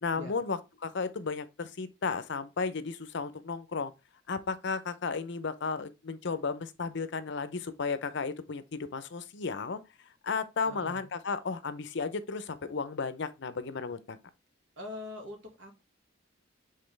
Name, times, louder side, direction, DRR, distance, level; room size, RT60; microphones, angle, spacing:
voice 1, 0.0-3.9 4.3-9.8 10.2-14.2, left 4 dB, 65° left, 0.6 m, -34 dB
voice 2, 10.6-11.1 14.8-15.8, left 2 dB, 65° right, 1.8 m, -43 dB
7.6 x 3.9 x 3.3 m
head